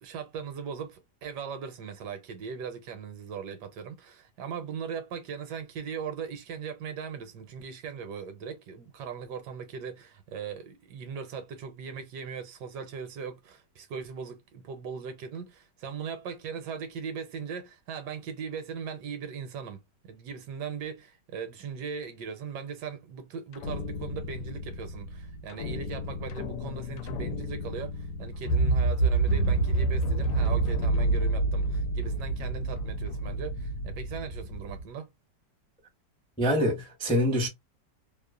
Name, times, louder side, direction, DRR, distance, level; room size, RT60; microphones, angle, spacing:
voice 1, 0.0-35.1, right 6 dB, 75° right, 1.2 m, -39 dB
sound 1, 23.5-34.8, right 2 dB, 75° left, 1.1 m, -29 dB
voice 2, 36.4-37.5, equal, 5° left, 0.4 m, -25 dB
3.0 x 2.1 x 2.3 m
omnidirectional pair, 1.9 m